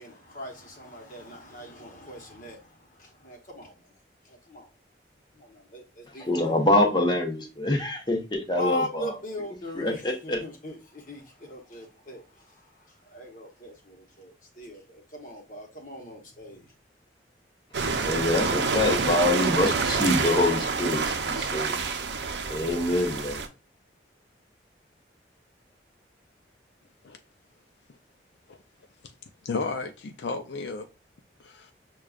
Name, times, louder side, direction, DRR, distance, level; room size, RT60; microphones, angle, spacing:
voice 1, 0.0-3.9 4.2-4.7 5.3-6.5 8.5-16.7, equal, 45° left, 1.0 m, -40 dB
voice 2, 6.2-9.1 9.8-10.4 18.0-21.9 22.5-23.4, left 1 dB, 25° left, 0.8 m, -25 dB
sound 1, 17.7-23.5, right 4 dB, 70° right, 0.5 m, -27 dB
voice 3, 29.4-30.9 31.4-31.7, left 4 dB, 75° left, 0.5 m, -33 dB
6.4 x 2.3 x 2.3 m
head